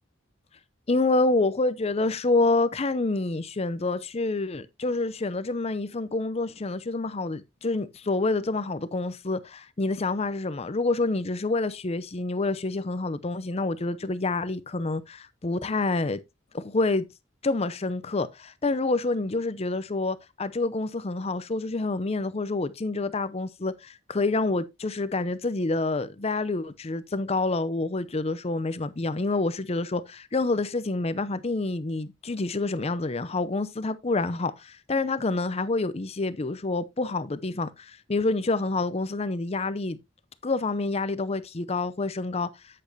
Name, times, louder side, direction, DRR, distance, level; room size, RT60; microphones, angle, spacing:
voice 1, 0.9-16.2 16.5-17.1 17.4-40.0 40.4-42.5, left 3 dB, 35° left, 0.6 m, -27 dB
8.7 x 8.2 x 2.8 m
head